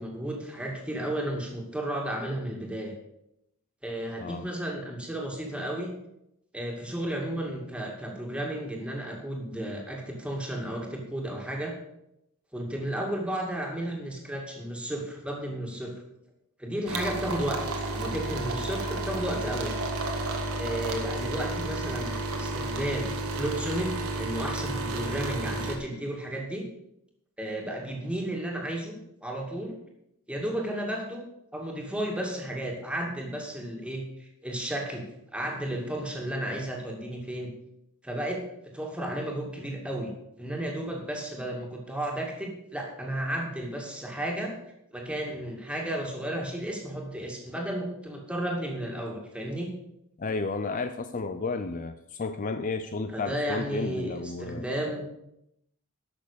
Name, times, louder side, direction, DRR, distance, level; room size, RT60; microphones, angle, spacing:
voice 1, 0.0-2.9 3.8-5.9 6.5-11.8 12.5-16.0 16.6-17.6 17.9-19.8 20.5-26.6 27.4-29.8 30.3-31.2 31.5-35.1 35.3-37.5 38.0-38.4 38.7-40.1 40.4-44.5 44.9-49.7 53.1-55.1, right 1 dB, 5° right, 0 dB, 2.2 m, -33 dB
sound 1, 16.9-25.7, right 2 dB, 85° right, 1.8 m, -32 dB
voice 2, 50.2-54.7, left 4 dB, 35° left, 9 dB, 0.5 m, -32 dB
12.0 x 6.6 x 6.6 m, 0.81 s
head